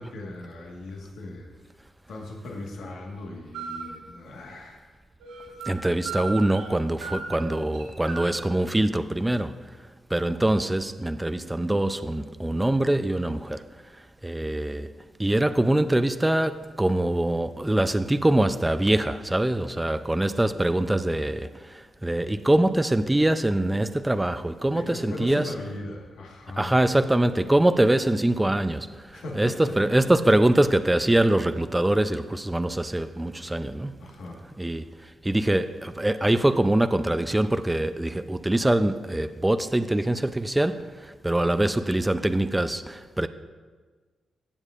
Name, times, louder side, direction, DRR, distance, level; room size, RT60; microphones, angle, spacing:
voice 1, 0.0-1.5 2.1-4.8 7.3-7.5 24.7-26.8 29.1-29.6 34.0-34.4, left 2 dB, 80° left, 0 dB, 1.5 m, -38 dB
sound 1, 3.5-3.9 5.2-5.7 6.0-6.8 7.0-8.5, right 5 dB, 90° right, 1.1 m, -36 dB
voice 2, 5.7-9.5 10.1-13.6 14.2-14.9 15.2-21.5 22.0-25.5 26.6-28.9 29.3-33.9 34.6-34.8 35.2-40.8 41.2-43.3, right 1 dB, 15° right, 10 dB, 0.4 m, -23 dB
15.5 x 7.2 x 2.5 m, 1.4 s
supercardioid pair, 50°, 0 cm